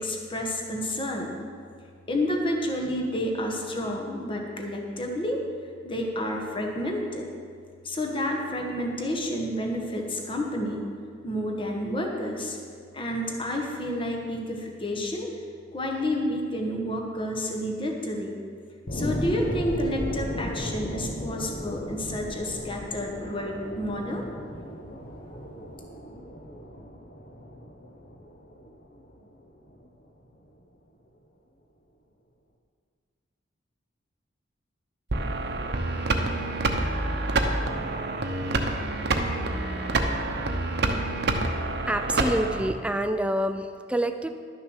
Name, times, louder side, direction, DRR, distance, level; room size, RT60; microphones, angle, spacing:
voice 1, 0.0-1.3 2.1-5.4 5.8-7.3 7.8-10.8 11.2-12.6 12.9-15.3 15.7-18.4 18.9-24.2, left 1 dB, 25° left, 1 dB, 1.2 m, -30 dB
sound 1, 18.9-29.9 30.3-30.4, equal, 50° left, 1.0 m, -35 dB
sound 2, 35.1-42.7, right 2 dB, 60° right, 0.9 m, -27 dB
voice 2, 41.9-44.3, right 1 dB, 5° right, 8 dB, 0.4 m, -27 dB
11.5 x 6.6 x 6.4 m, 2.2 s
head